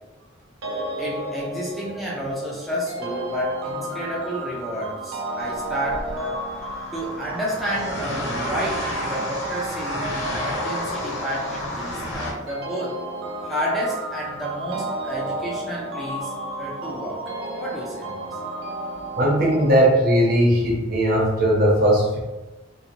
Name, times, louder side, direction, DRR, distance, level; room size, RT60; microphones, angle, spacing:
sound 1, 0.6-19.8, right 1 dB, 90° right, 0.5 m, -33 dB
voice 1, 1.0-6.3 6.9-13.0 13.4-16.3 16.6-17.3 17.6-18.4, equal, ahead, -5 dB, 0.5 m, -30 dB
sound 2, 5.4-12.3, left 1 dB, 75° left, 0.7 m, -32 dB
voice 2, 19.2-22.2, equal, 50° right, -2 dB, 0.7 m, -18 dB
2.7 x 2.5 x 2.8 m, 1.1 s
head